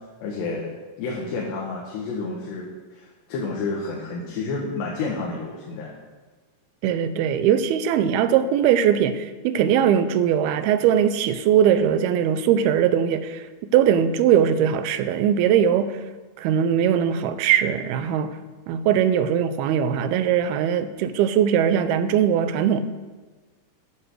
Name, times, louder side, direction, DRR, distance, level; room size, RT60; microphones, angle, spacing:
voice 1, 0.2-0.7 1.0-6.0, left 3 dB, 80° left, -3 dB, 3.7 m, -30 dB
voice 2, 6.8-13.4 13.7-16.0 16.4-18.4 18.7-22.8, right 9 dB, 80° right, 11 dB, 2.5 m, -20 dB
14.0 x 10.0 x 4.8 m, 1.3 s
omnidirectional pair, 4.9 m